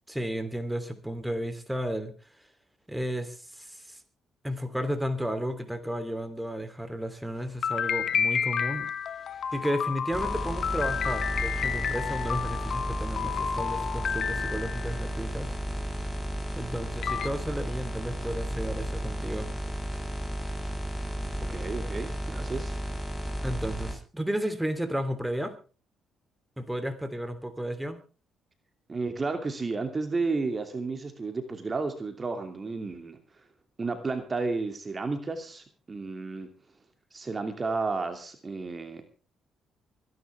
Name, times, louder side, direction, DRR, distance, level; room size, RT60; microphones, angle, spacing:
voice 1, 0.1-2.1 2.9-4.0 4.4-8.9 9.5-15.5 16.6-19.5 23.4-25.5 26.6-28.0, equal, 5° right, 9 dB, 3.1 m, -33 dB
sound 1, 7.6-15.0 16.5-16.6 17.0-17.3, left 7 dB, 60° left, 1.3 m, -30 dB
sound 2, 10.1-23.9, equal, 10° left, 6.9 m, -33 dB
voice 2, 21.5-22.7 28.9-33.4 33.8-36.5 37.1-39.0, right 3 dB, 35° right, 7 dB, 2.6 m, -32 dB
24.0 x 11.0 x 3.4 m, 0.36 s
hypercardioid pair, 50°, 0 cm